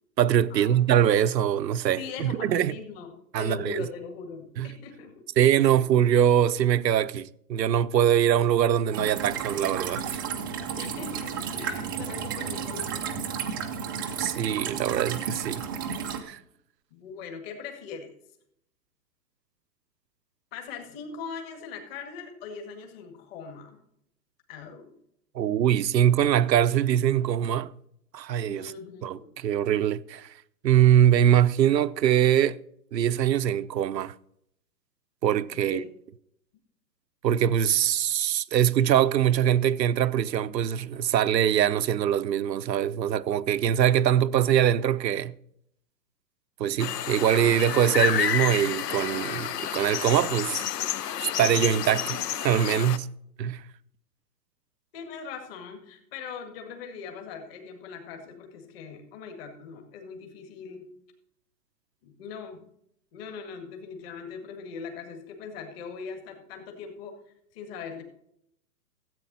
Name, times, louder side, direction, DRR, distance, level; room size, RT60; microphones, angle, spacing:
voice 1, 0.2-2.7 3.3-3.9 4.6-4.7 5.4-10.2 14.2-15.6 16.2-16.4 25.3-27.7 28.1-28.7 29.0-29.2 29.4-30.3 30.6-32.6 32.9-34.1 35.2-35.8 37.2-45.3 46.6-50.6 51.2-53.1 53.4-53.6, right 10 dB, 80° right, 0.8 m, -23 dB
voice 2, 2.0-5.2 5.6-5.8 10.7-13.4 16.9-18.1 20.5-23.8 24.5-24.9 28.5-29.3 35.5-35.8 54.9-60.9 62.0-62.6 63.1-67.2 67.5-68.0, left 5 dB, 35° left, 2.0 m, -40 dB
sound 1, 8.9-16.2, right 7 dB, 15° right, 0.4 m, -32 dB
sound 2, 46.8-53.0, left 10 dB, 70° left, 0.8 m, -30 dB
13.5 x 8.5 x 4.1 m
hypercardioid pair, 140°, 49 cm